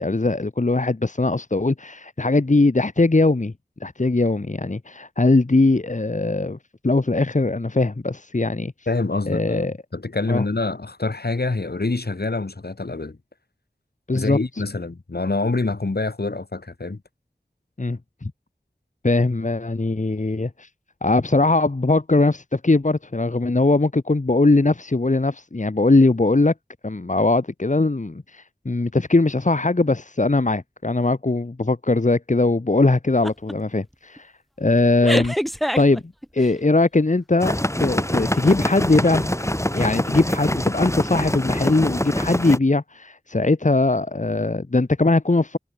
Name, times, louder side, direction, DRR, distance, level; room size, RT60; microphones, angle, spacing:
voice 1, 0.0-3.5 3.8-6.6 6.8-8.7 9.3-9.7 10.3-10.4 14.1-14.4 17.8-18.0 19.0-20.7 21.0-26.5 26.8-34.3 34.6-35.3 35.8-36.0 36.3-39.3 39.7-45.6, left 2 dB, 50° left, 1.6 m, -20 dB
voice 2, 8.9-13.2 14.1-17.0, left 3 dB, 90° left, 7.4 m, -26 dB
sound 1, 33.2-33.5 33.9-34.2 35.0-36.5, equal, ahead, 1.8 m, -25 dB
sound 2, 37.4-42.6, left 1 dB, 20° left, 6.8 m, -24 dB
wide cardioid pair, 40°, 16 cm